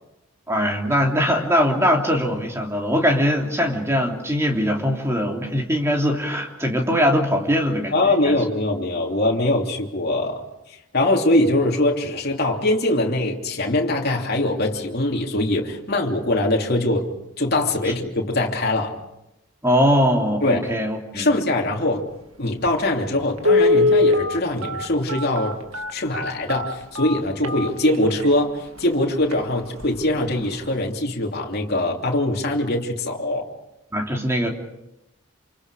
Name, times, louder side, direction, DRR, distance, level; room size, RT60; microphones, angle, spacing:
voice 1, 0.5-7.9 8.2-8.4 19.6-21.3 33.9-34.5, equal, 10° right, 1 dB, 3.2 m, -21 dB
voice 2, 7.9-17.1 17.4-19.0 20.4-20.7 21.1-22.1 22.4-25.5 25.9-33.5, left 1 dB, 45° left, 0 dB, 3.1 m, -22 dB
Telephone, 23.4-28.3 28.8-28.9 29.2-29.4 29.8-30.1 30.4-30.5, left 2 dB, 75° right, 2.0 m, -21 dB
28.5 x 28.0 x 5.0 m, 0.88 s
head